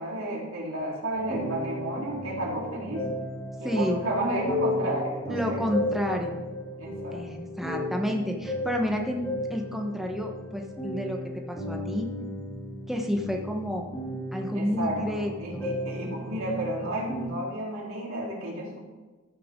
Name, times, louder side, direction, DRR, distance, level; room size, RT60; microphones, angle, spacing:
voice 1, 0.0-3.1 3.6-5.6 6.8-7.2 14.5-18.8, right 1 dB, 75° right, -4 dB, 3.4 m, -32 dB
sound 1, 1.1-17.3, left 1 dB, 15° left, 3.4 m, -35 dB
voice 2, 3.6-4.0 5.3-6.4 7.1-12.1 12.9-13.9 14.3-15.7, equal, ahead, 1 dB, 1.0 m, -30 dB
14.0 x 6.8 x 3.7 m, 1.2 s
head